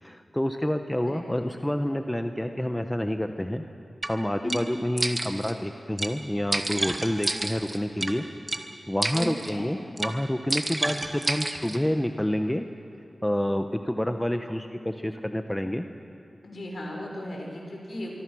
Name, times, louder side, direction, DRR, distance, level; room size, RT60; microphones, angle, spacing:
voice 1, 0.0-3.7 4.1-8.3 8.6-12.6 13.2-15.9, left 1 dB, 10° left, 6 dB, 1.1 m, -28 dB
sound 1, 4.0-4.1 4.5-4.6 5.0-5.5 6.0-6.1 6.5-8.1 8.5-8.6 9.0-9.5 10.0-10.1 10.5-11.8, right 2 dB, 30° right, 1.8 m, -29 dB
voice 2, 9.1-9.7 16.4-18.2, left 1 dB, 60° left, 0 dB, 6.1 m, -36 dB
25.0 x 24.5 x 6.3 m, 2.6 s
cardioid pair, 55°, 0 cm